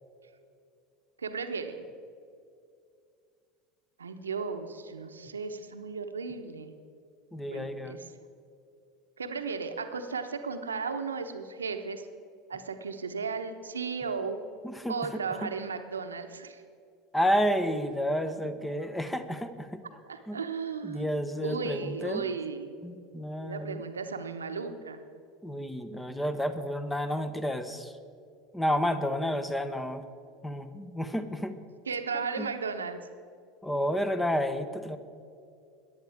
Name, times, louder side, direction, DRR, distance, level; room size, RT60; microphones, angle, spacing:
voice 1, 1.2-1.8 4.0-6.8 7.5-8.1 9.2-12.1 12.5-14.4 14.9-16.6 20.1-22.8 23.4-25.0 31.9-33.0, right 5 dB, 85° right, 7 dB, 1.0 m, -35 dB
voice 2, 7.3-8.0 14.6-15.0 15.4-15.5 17.1-19.8 20.3-20.4 20.8-22.3 22.8-23.8 25.4-27.9 28.5-30.0 30.4-31.6 32.4-32.5 33.6-35.0, equal, 10° left, 10 dB, 1.2 m, -30 dB
22.5 x 10.5 x 3.6 m, 2.4 s
figure-of-eight pair, 75°, 0 cm